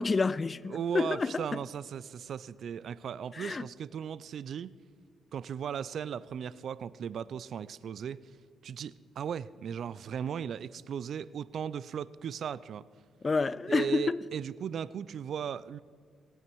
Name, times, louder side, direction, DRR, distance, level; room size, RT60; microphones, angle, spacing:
voice 1, 0.0-1.6 3.3-3.7 13.2-14.2, left 4 dB, 30° left, 0.3 m, -29 dB
voice 2, 0.7-4.7 5.3-8.2 8.6-12.8 13.7-15.8, right 8 dB, 60° right, 0.4 m, -37 dB
19.0 x 9.0 x 4.6 m
cardioid pair, 90°, 0 cm